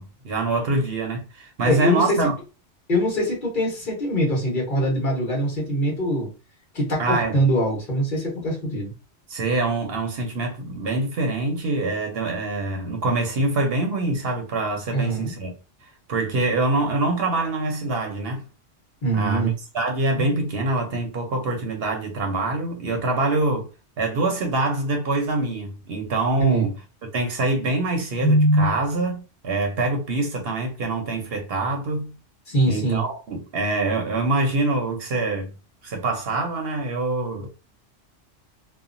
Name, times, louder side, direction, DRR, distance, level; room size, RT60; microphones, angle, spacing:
voice 1, 0.0-2.3 7.0-7.3 9.3-15.5 16.1-18.4 19.1-23.7 24.0-26.8 27.1-32.2 32.7-35.5 35.8-37.5, right 2 dB, 60° right, 0.8 m, -25 dB
voice 2, 1.6-2.3 2.9-6.3 6.7-8.9 14.9-15.3 19.0-19.5 20.2-20.3 26.4-26.7 28.2-28.7 32.5-33.0, equal, 45° left, 1.2 m, -22 dB
2.8 x 2.2 x 2.5 m
omnidirectional pair, 1.3 m